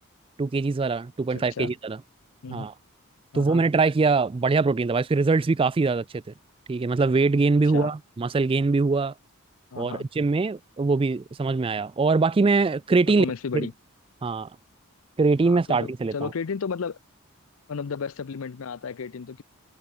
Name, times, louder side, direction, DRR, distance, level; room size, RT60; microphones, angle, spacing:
voice 1, 0.4-2.0 2.5-2.7 3.3-6.2 6.7-9.1 9.8-13.3 13.5-13.7 14.2-14.5 15.2-16.3, right 3 dB, 25° right, 0.3 m, -23 dB
voice 2, 1.3-1.7 2.4-2.7 3.3-3.7 7.7-7.9 9.7-10.1 13.1-13.7 15.4-17.0 17.7-19.4, left 5 dB, 70° left, 0.5 m, -33 dB
head